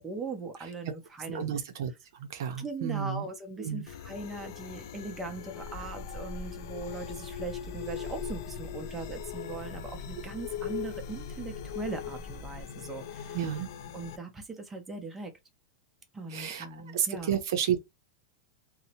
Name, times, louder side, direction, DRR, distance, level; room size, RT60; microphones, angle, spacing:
voice 1, 0.0-1.5 2.6-13.5 13.9-15.3 16.1-17.4, right 3 dB, 10° right, 0.5 m, -40 dB
voice 2, 1.3-1.9 2.2-3.3 3.6-3.9 13.3-13.7 16.3-16.7 16.9-17.8, right 9 dB, 65° right, 0.5 m, -31 dB
sound 1, 3.9-14.2, left 10 dB, 60° left, 0.4 m, -41 dB
sound 2, 5.6-12.6, left 1 dB, 40° left, 1.0 m, -45 dB
2.7 x 2.0 x 2.7 m
supercardioid pair, 160°, 2 cm